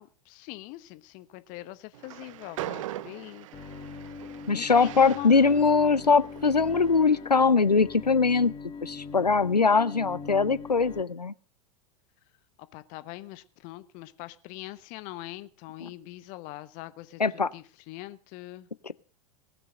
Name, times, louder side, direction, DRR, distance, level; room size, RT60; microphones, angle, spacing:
voice 1, 0.0-3.5 4.5-5.5 12.7-18.7, left 18 dB, 40° left, 14 dB, 1.1 m, -42 dB
Train, 1.9-7.2, right 14 dB, 55° right, 0.5 m, -42 dB
Bowed string instrument, 3.5-11.0, left 5 dB, 25° left, 1.8 m, -42 dB
voice 2, 4.5-8.5 8.8-11.3 15.8-15.9 17.2-17.5, left 4 dB, 90° left, 17 dB, 0.5 m, -22 dB
19.0 x 6.8 x 6.4 m, 0.43 s
figure-of-eight pair, 90°, 20 cm